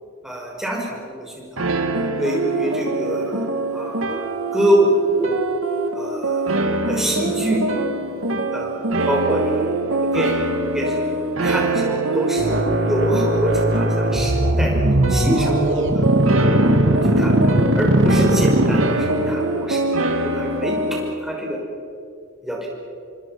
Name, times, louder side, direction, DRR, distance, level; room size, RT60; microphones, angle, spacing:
voice 1, 0.2-1.7 2.2-3.5 3.7-5.4 5.9-6.6 6.9-7.6 8.5-10.4 10.7-16.0 16.6-17.4 17.8-19.8 20.2-21.6 22.4-22.7, equal, ahead, -2 dB, 5.9 m, -25 dB
sound 1, 1.6-21.1, right 2 dB, 85° right, 1.9 m, -24 dB
sound 2, 12.4-19.3, right 1 dB, 65° right, 2.7 m, -19 dB
28.0 x 24.5 x 6.1 m, 2.4 s
head